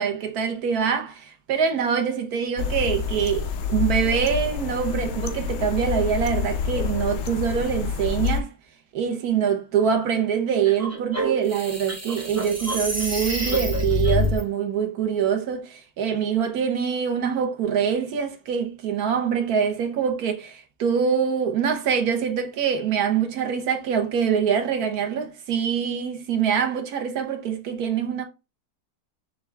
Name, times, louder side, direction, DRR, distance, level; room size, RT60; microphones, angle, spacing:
voice 1, 0.0-8.5 8.9-28.2, right 7 dB, 70° right, 1.3 m, -24 dB
sound 1, 2.6-8.4, left 6 dB, 80° left, 0.6 m, -27 dB
sound 2, 10.6-14.4, equal, 20° right, 0.3 m, -26 dB
6.5 x 2.4 x 3.3 m
omnidirectional pair, 1.8 m